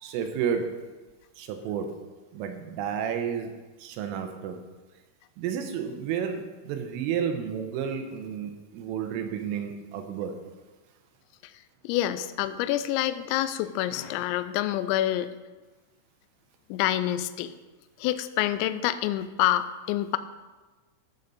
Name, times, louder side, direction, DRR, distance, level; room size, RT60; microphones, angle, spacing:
voice 1, 0.0-0.8 1.4-2.0 2.3-3.5 3.8-4.6 5.4-10.3, right 7 dB, 85° right, 6 dB, 3.4 m, -31 dB
voice 2, 11.8-15.3 16.7-17.5 18.0-20.2, left 13 dB, 90° left, 12 dB, 2.6 m, -27 dB
14.0 x 6.5 x 4.1 m, 1.2 s
omnidirectional pair, 5.7 m